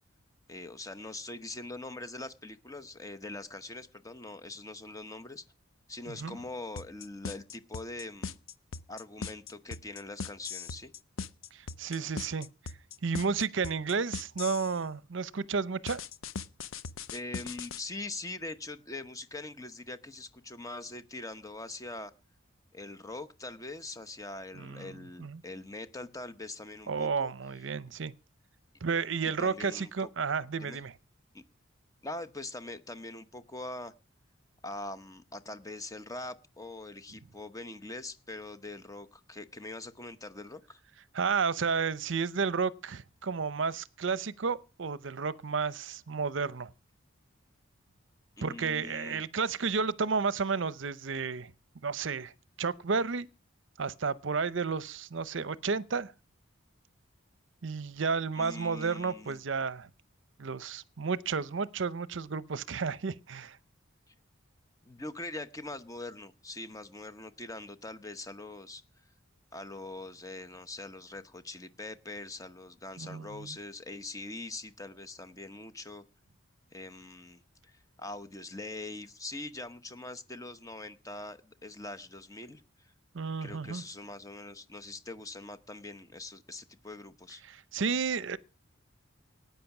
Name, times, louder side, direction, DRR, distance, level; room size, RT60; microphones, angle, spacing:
voice 1, 0.5-5.4 5.9-8.3 8.9-10.9 17.1-22.1 22.7-27.3 29.4-30.1 30.6-30.8 31.3-31.4 32.0-33.9 34.6-40.8 48.4-49.2 58.3-59.4 64.1-64.2 64.9-68.8 69.5-76.0 76.7-82.9 83.4-87.4, left 2 dB, 15° left, 0.9 m, -43 dB
voice 2, 6.1-6.4 11.5-12.5 13.0-16.0 24.6-24.9 25.2-25.4 26.9-28.1 28.8-30.9 41.1-46.7 48.4-51.5 51.8-52.3 52.6-53.3 53.8-56.1 57.6-59.9 60.4-63.6 73.0-73.6 83.1-83.8 87.4-88.4, right 5 dB, 65° right, 0.6 m, -32 dB
sound 1, 6.8-14.8 15.9-17.8, left 5 dB, 75° left, 0.7 m, -39 dB
18.5 x 9.2 x 5.9 m
head